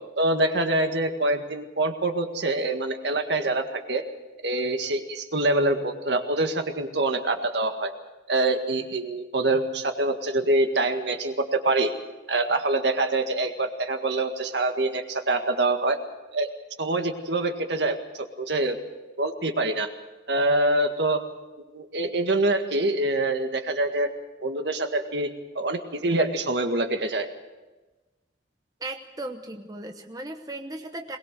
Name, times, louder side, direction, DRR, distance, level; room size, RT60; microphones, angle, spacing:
voice 1, 0.2-4.0 4.4-7.9 8.3-11.9 12.3-16.0 16.3-16.5 16.8-18.8 19.2-19.9 20.3-21.2 21.7-24.1 24.4-25.3 25.6-27.3, right 2 dB, 65° right, 6 dB, 1.8 m, -25 dB
voice 2, 28.8-31.2, right 2 dB, 20° right, 5 dB, 1.0 m, -36 dB
21.5 x 20.5 x 6.7 m, 1.2 s
head